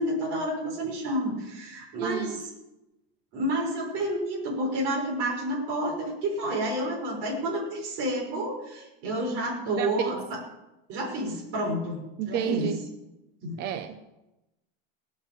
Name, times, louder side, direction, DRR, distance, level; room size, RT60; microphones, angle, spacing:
voice 1, 0.0-2.5 3.3-10.4 10.9-12.0 12.2-12.7 13.4-13.6, right 1 dB, 50° right, -2 dB, 5.4 m, -30 dB
voice 2, 2.0-2.4 9.8-10.2 12.2-12.8 13.6-14.0, right 9 dB, 35° right, 9 dB, 0.8 m, -30 dB
19.0 x 7.5 x 7.7 m, 0.97 s
supercardioid pair, 150°, 29 cm